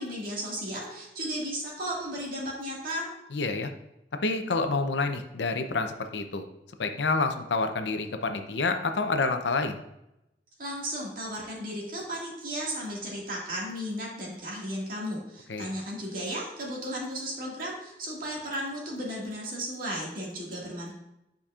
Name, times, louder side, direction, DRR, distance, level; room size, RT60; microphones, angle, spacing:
voice 1, 0.0-3.1 10.6-20.9, equal, 50° right, -3 dB, 2.0 m, -35 dB
voice 2, 3.3-3.7 4.2-6.4 6.8-9.8 15.5-15.7, left 3 dB, 80° left, 7 dB, 0.6 m, -28 dB
9.7 x 5.2 x 2.5 m, 0.87 s
head